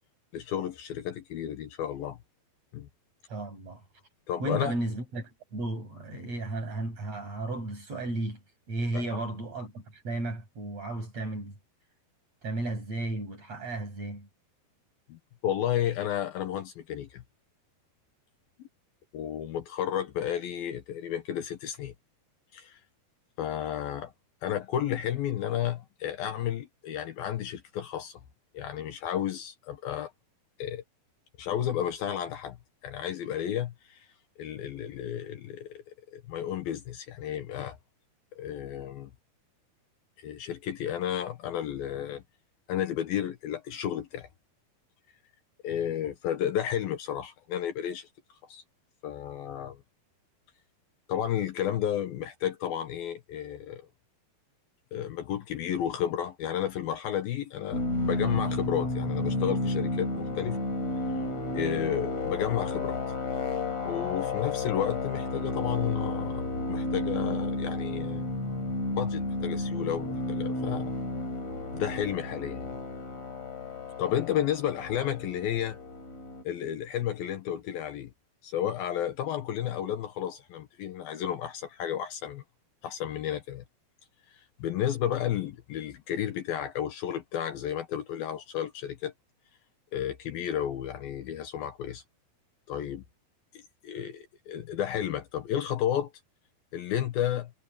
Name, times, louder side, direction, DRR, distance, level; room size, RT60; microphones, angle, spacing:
voice 1, 0.3-2.2 2.7-2.9 4.3-4.8 8.9-9.1 15.1-17.2 19.1-21.9 22.5-22.8 23.4-24.1 24.4-28.2 28.5-30.1 30.6-30.8 31.4-32.6 32.8-34.1 34.4-35.8 36.1-37.8 38.4-39.1 40.2-42.2 42.7-44.3 45.6-48.1 48.5-48.6 49.0-49.8 51.1-53.8 54.9-60.6 61.5-63.0 63.9-68.3 68.9-70.9 71.7-72.8 74.0-75.8 76.4-78.1 78.4-82.4 82.8-83.6 84.3-89.1 89.9-92.0 92.7-93.0 93.8-96.1 96.7-97.5, left 10 dB, 70° left, 2.9 m, -32 dB
voice 2, 3.3-3.8 4.4-8.4 8.7-11.5 12.4-14.3, right 2 dB, 40° right, 9.1 m, -34 dB
sound 1, 57.7-76.4, left 2 dB, 40° left, 6.0 m, -32 dB
omnidirectional pair, 4.7 m